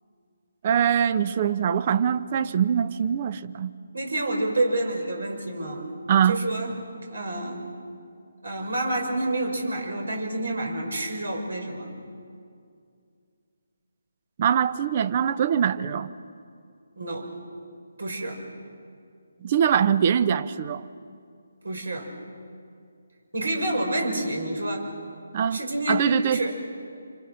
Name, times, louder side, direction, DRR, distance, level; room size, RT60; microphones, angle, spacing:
voice 1, 0.6-3.7 6.1-6.4 14.4-16.1 19.4-20.9 25.3-25.6 25.9-26.4, right 8 dB, 35° right, 0.8 m, -23 dB
voice 2, 3.9-5.9 6.3-6.7 7.1-7.6 8.4-11.9 16.9-17.3 18.0-18.4 21.6-22.1 23.3-24.9 25.5-26.6, right 1 dB, 75° right, 6.3 m, -28 dB
28.5 x 26.0 x 6.4 m
figure-of-eight pair, 150°, 0 cm